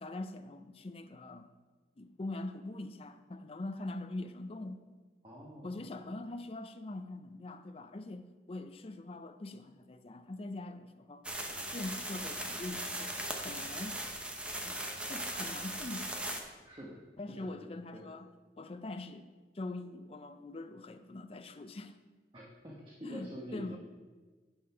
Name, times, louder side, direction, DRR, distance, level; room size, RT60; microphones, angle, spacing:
voice 1, 0.0-1.5 2.0-4.8 5.6-11.2 11.7-14.1 14.6-14.8 15.0-16.1 17.2-18.3 18.6-19.3 19.5-21.9 23.0-23.8, left 2 dB, 35° left, 9 dB, 0.5 m, -43 dB
voice 2, 5.2-5.7 16.6-17.0 17.3-18.1 22.3-23.8, equal, 25° right, -3 dB, 1.1 m, -46 dB
sound 1, 11.2-16.4, right 1 dB, 5° right, 0.7 m, -39 dB
10.0 x 5.2 x 5.5 m, 1.3 s
head